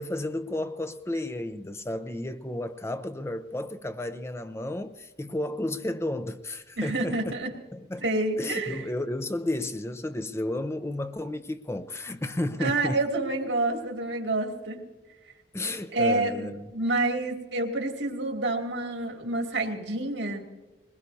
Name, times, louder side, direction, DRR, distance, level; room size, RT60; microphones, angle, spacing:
voice 1, 0.0-7.2 7.7-8.1 8.4-13.0 15.5-16.7, left 1 dB, 15° left, 0.6 m, -32 dB
voice 2, 6.8-7.5 8.0-8.8 12.6-14.8 15.9-20.4, right 2 dB, 90° right, 2.4 m, -28 dB
21.5 x 20.5 x 2.7 m
head